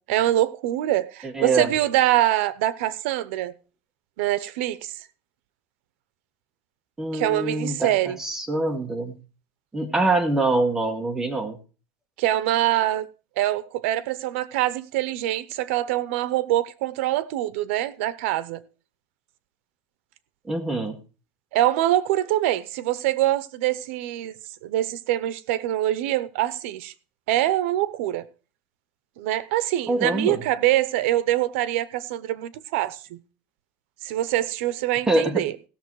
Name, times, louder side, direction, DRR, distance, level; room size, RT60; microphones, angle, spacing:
voice 1, 0.0-3.5 4.2-5.0 7.1-8.2 12.2-13.1 13.4-18.6 21.5-24.4 24.6-26.9 27.3-28.3 29.2-33.2 34.0-35.5, right 14 dB, 85° right, 0.8 m, -24 dB
voice 2, 1.2-1.7 7.0-7.9 8.2-9.2 9.7-11.6 20.5-21.0 29.9-30.4 35.1-35.4, right 2 dB, 10° right, 1.4 m, -24 dB
16.0 x 6.8 x 4.7 m
cardioid pair, 160°, 7 cm